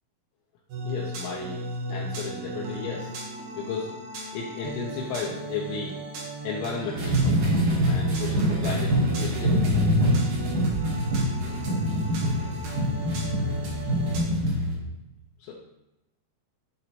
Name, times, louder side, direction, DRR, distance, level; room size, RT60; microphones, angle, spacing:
sound 1, 0.7-14.2, right 3 dB, 90° right, 1.9 m, -35 dB
voice 1, 0.8-1.6 1.9-3.1 3.6-4.0 4.3-6.0 6.4-7.4 7.9-9.8 15.4-15.5, left 5 dB, 80° left, -3 dB, 2.9 m, -34 dB
sound 2, 6.9-14.7, equal, 70° right, 1.9 m, -25 dB
10.5 x 4.0 x 2.9 m, 0.95 s
omnidirectional pair, 5.7 m